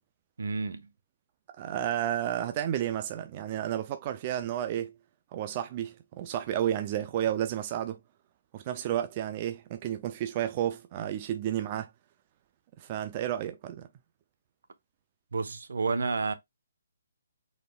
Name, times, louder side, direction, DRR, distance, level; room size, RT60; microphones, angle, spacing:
voice 1, 0.4-0.9 15.3-16.3, right 4 dB, 70° right, 0.9 m, -30 dB
voice 2, 1.5-4.9 5.3-8.0 8.5-11.9 12.8-13.9, right 11 dB, 20° right, 0.3 m, -31 dB
5.5 x 4.2 x 2.3 m
hypercardioid pair, 175°, 0 cm